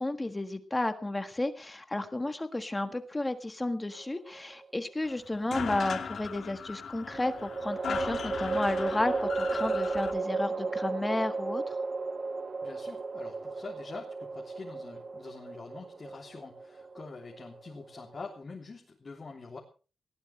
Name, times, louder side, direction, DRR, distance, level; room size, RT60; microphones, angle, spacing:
voice 1, 0.0-11.8, left 2 dB, 15° left, 8 dB, 1.6 m, -32 dB
sound 1, 4.0-4.8 7.1-18.4, right 3 dB, 35° right, 0.8 m, -35 dB
sound 2, 5.0-5.1 5.3-10.1, left 6 dB, 60° left, 3.0 m, -38 dB
voice 2, 12.6-19.6, left 4 dB, 35° left, -1 dB, 3.3 m, -45 dB
19.5 x 17.5 x 3.4 m, 0.36 s
wide cardioid pair, 130°, 0 cm